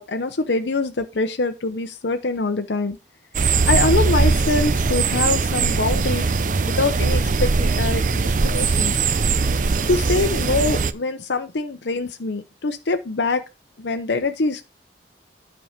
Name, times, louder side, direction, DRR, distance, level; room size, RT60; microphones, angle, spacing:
voice 1, 0.0-3.0 3.7-6.3 6.6-9.1 9.9-13.4 13.8-14.6, left 3 dB, 80° left, 0.8 m, -24 dB
sound 1, 3.3-10.9, right 4 dB, 45° right, 0.5 m, -20 dB
9.2 x 4.6 x 5.0 m
head